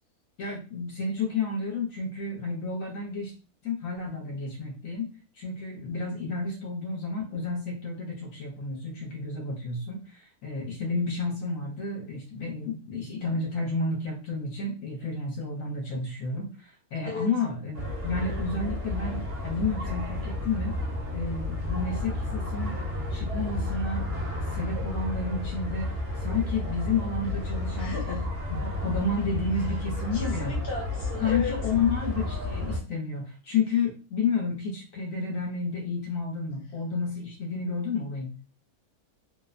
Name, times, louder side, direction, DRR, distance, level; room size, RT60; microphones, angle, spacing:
voice 1, 0.4-3.3 3.6-20.8 21.1-22.8 23.1-25.9 26.2-30.6 31.2-38.4, left 4 dB, 65° left, 0 dB, 1.0 m, -31 dB
sound 1, 17.7-32.8, left 2 dB, 60° right, 1.0 m, -32 dB
voice 2, 27.8-28.2 30.1-31.5, left 3 dB, 20° left, -3 dB, 0.7 m, -35 dB
2.8 x 2.1 x 2.4 m, 0.35 s
omnidirectional pair, 1.6 m